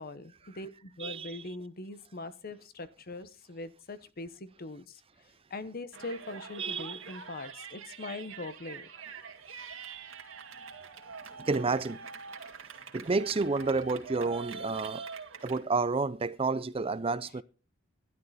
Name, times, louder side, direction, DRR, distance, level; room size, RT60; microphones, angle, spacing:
voice 1, 0.0-5.0 5.5-8.9, left 2 dB, 50° left, 1.0 m, -42 dB
voice 2, 1.0-1.5 6.6-7.1 11.4-12.0 12.9-17.4, right 4 dB, 30° right, 0.5 m, -30 dB
Yell, 5.9-15.6, right 5 dB, 80° right, 2.2 m, -45 dB
12.0 x 11.5 x 4.2 m
head